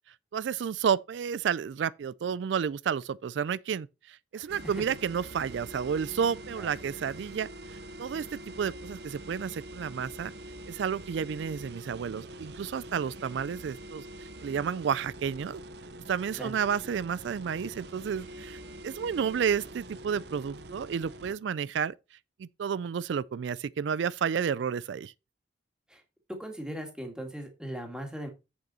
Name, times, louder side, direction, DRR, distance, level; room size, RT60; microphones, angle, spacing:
voice 1, 0.3-7.5 8.0-10.3 10.7-15.6 16.1-21.9 22.4-25.1, right 7 dB, 80° right, 0.3 m, -31 dB
voice 2, 4.3-4.8 6.6-6.7 16.4-16.6 25.9-26.0 26.4-28.3, equal, 5° right, 2.0 m, -39 dB
sound 1, 4.5-21.3, right 1 dB, 65° right, 0.8 m, -45 dB
7.8 x 6.6 x 4.3 m
head